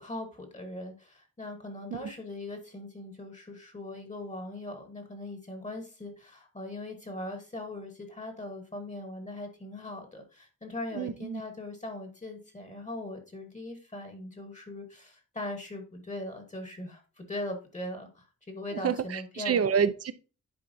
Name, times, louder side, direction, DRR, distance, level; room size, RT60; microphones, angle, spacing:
voice 1, 0.0-19.6, left 1 dB, 20° left, 1.1 m, -40 dB
voice 2, 10.9-11.4 18.7-20.1, right 7 dB, 50° right, 0.5 m, -28 dB
10.5 x 4.5 x 2.6 m
wide cardioid pair, 180°, 32 cm